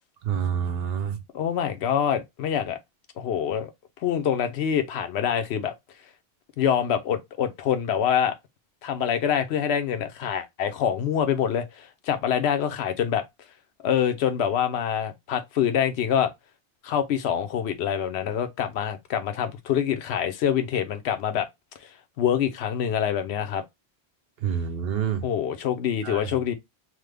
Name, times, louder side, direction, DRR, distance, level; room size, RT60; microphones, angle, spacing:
voice 1, 0.2-1.2 24.4-25.2 26.0-26.3, right 8 dB, 70° right, 0.9 m, -27 dB
voice 2, 1.3-2.8 3.2-3.7 4.0-5.7 6.6-8.3 8.8-13.2 13.8-16.3 16.8-21.5 22.2-23.6 25.2-26.5, left 8 dB, 90° left, 0.9 m, -25 dB
3.1 x 2.1 x 3.3 m
omnidirectional pair, 1.1 m